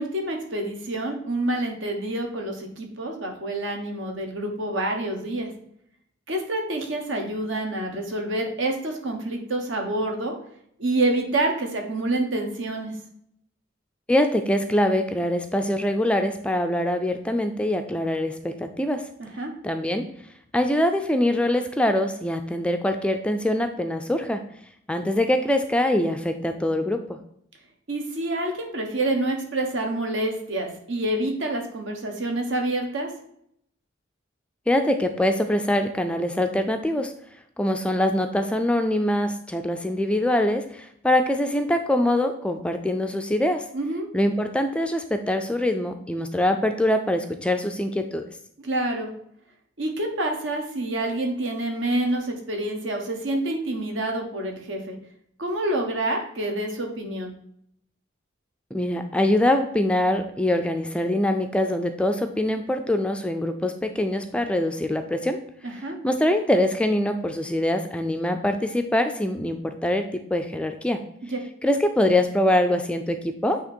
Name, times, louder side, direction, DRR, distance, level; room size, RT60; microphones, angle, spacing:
voice 1, 0.0-5.5 6.3-10.3 10.8-12.9 19.2-19.5 27.9-33.1 43.7-44.1 48.6-49.1 49.8-54.9 55.4-57.3 65.6-66.0, right 1 dB, 75° right, 2 dB, 1.2 m, -27 dB
voice 2, 14.1-19.0 19.6-20.0 20.5-24.4 24.9-27.2 34.7-37.1 37.6-43.6 44.1-48.2 58.7-65.4 66.0-71.0 71.6-73.6, left 1 dB, 5° left, 6 dB, 0.3 m, -23 dB
8.3 x 2.9 x 4.4 m, 0.71 s
head